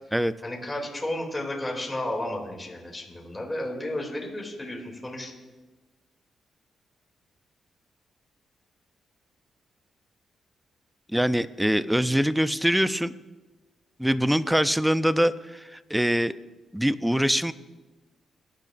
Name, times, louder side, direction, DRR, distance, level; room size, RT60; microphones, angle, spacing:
voice 1, 0.4-5.3, left 1 dB, 15° left, -1 dB, 2.7 m, -32 dB
voice 2, 11.1-13.1 14.0-16.3 16.7-17.5, equal, 5° right, 14 dB, 0.5 m, -23 dB
21.0 x 10.5 x 2.6 m, 1.2 s
cardioid pair, 95°, 0 cm